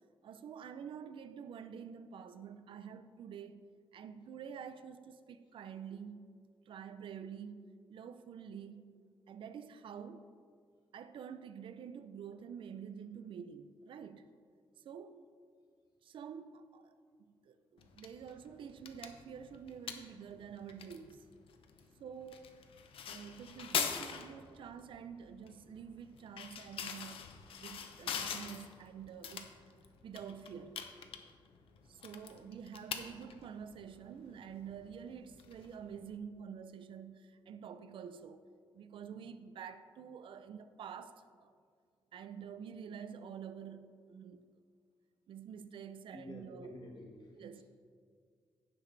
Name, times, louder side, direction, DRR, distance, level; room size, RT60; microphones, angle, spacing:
voice 1, 0.2-3.6 3.9-6.3 6.7-9.0 9.3-10.3 10.9-14.3 14.8-15.3 16.0-16.9 17.4-21.3 22.0-22.5 23.1-29.6 30.0-30.8 31.9-38.4 38.7-41.5 42.1-44.6 45.3-46.7 47.3-47.6, right 7 dB, 70° right, 0.5 m, -48 dB
sound 1, 17.8-36.2, left 7 dB, 80° left, 0.8 m, -44 dB
voice 2, 46.1-47.6, left 1 dB, 55° left, 1.7 m, -51 dB
17.0 x 5.8 x 3.3 m
wide cardioid pair, 145°, 9 cm